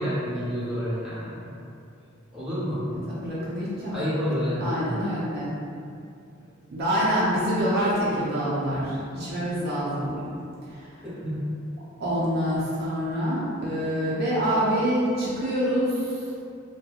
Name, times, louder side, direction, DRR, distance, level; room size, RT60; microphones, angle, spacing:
voice 1, 0.0-1.5 2.3-2.9 3.9-4.9 9.4-9.5 11.0-11.6, equal, 5° right, -12 dB, 0.9 m, -29 dB
voice 2, 2.9-4.0 4.6-5.5 6.7-10.1 10.7-10.9 12.0-16.2, equal, 50° right, -8 dB, 0.5 m, -26 dB
2.7 x 2.2 x 2.3 m, 2.5 s
head